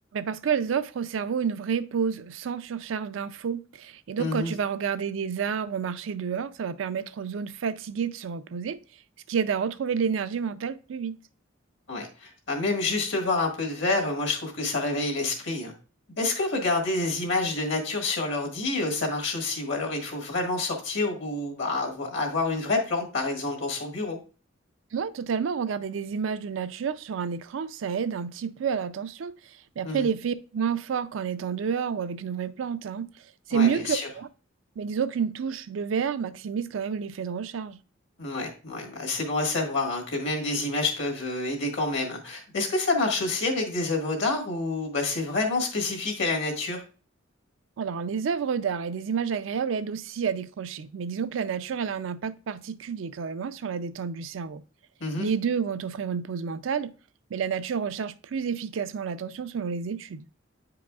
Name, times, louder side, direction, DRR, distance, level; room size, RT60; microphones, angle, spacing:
voice 1, 0.1-8.8 9.3-11.2 24.9-29.3 29.8-33.1 33.5-34.3 34.8-37.8 47.8-54.6 55.2-56.9 57.3-60.2, right 6 dB, 75° right, 0.4 m, -29 dB
voice 2, 4.2-4.5 11.9-15.7 16.2-24.2 29.8-30.1 33.5-34.1 38.2-46.8 55.0-55.3, left 2 dB, 65° left, 1.7 m, -28 dB
9.2 x 4.8 x 2.3 m
head